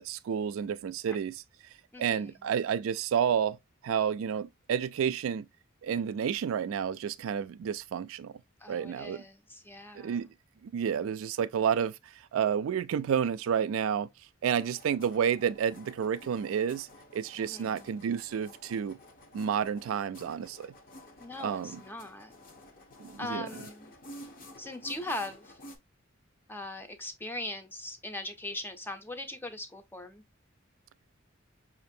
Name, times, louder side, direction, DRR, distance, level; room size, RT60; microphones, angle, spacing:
voice 1, 0.0-1.4 2.0-3.6 3.8-5.5 5.8-8.3 8.7-9.2 10.0-10.3 10.6-12.0 12.3-14.1 14.4-16.9 17.1-19.0 19.3-20.7 21.4-21.8 23.0-23.5, right 8 dB, 85° right, 0.3 m, -30 dB
voice 2, 1.9-2.3 8.6-10.2 17.4-17.9 21.2-22.3 23.2-23.9 24.6-25.6 26.5-30.2, left 1 dB, 10° left, 0.5 m, -40 dB
sound 1, 14.6-25.8, left 1 dB, 45° left, 0.7 m, -51 dB
5.2 x 2.5 x 2.6 m
head